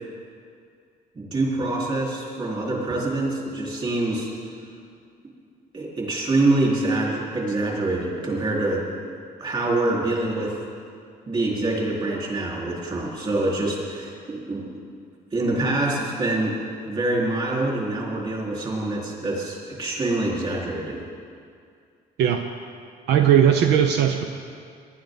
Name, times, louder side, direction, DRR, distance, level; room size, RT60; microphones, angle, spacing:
voice 1, 1.1-4.3 5.7-8.8 9.4-10.5 11.3-14.6 15.3-16.6 16.9-21.1, right 2 dB, 30° right, -4 dB, 4.4 m, -25 dB
voice 2, 23.1-24.2, right 9 dB, 80° right, 5 dB, 0.7 m, -18 dB
19.5 x 11.0 x 4.0 m, 2.3 s
cardioid pair, 110°, 17 cm